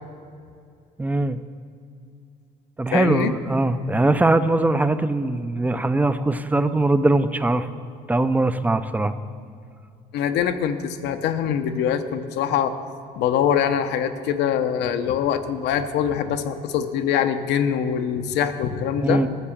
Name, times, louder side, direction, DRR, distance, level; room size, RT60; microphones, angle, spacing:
voice 1, 1.0-1.4 2.8-7.7 8.1-9.1 19.0-19.3, right 2 dB, 10° right, 12 dB, 0.5 m, -21 dB
voice 2, 2.9-3.3 10.1-12.7 13.2-19.2, left 8 dB, 85° left, 8 dB, 0.8 m, -23 dB
13.5 x 6.8 x 7.2 m, 2.4 s
cardioid pair, 110°, 17 cm